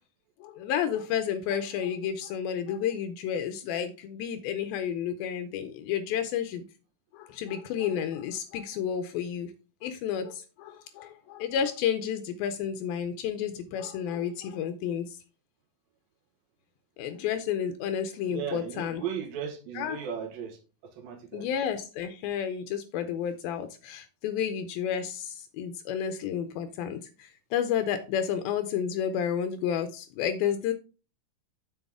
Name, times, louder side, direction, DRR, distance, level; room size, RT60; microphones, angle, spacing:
voice 1, 0.4-6.6 7.1-9.5 9.8-15.1 17.0-19.0 19.8-20.0 21.3-30.7, left 8 dB, 80° left, 9 dB, 2.5 m, -31 dB
voice 2, 18.3-21.5, right 7 dB, 75° right, 6 dB, 3.0 m, -36 dB
8.0 x 6.3 x 3.6 m, 0.33 s
omnidirectional pair, 4.2 m